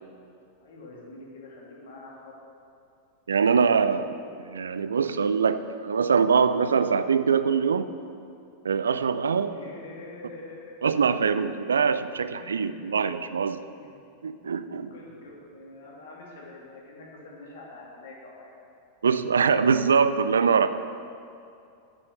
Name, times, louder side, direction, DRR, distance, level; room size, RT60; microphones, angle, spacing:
voice 1, 0.6-2.3 3.4-4.1 9.4-10.7 12.6-13.0 13.8-13.9 14.7-15.0 15.5-18.5 19.0-19.2, left 2 dB, 60° left, -3 dB, 2.6 m, -45 dB
voice 2, 3.3-4.0 4.4-7.9 8.6-9.5 10.8-13.6 14.2-14.9 19.0-20.7, right 6 dB, 70° right, 12 dB, 0.4 m, -23 dB
8.8 x 7.8 x 6.5 m, 2.6 s
figure-of-eight pair, 90°, 0 cm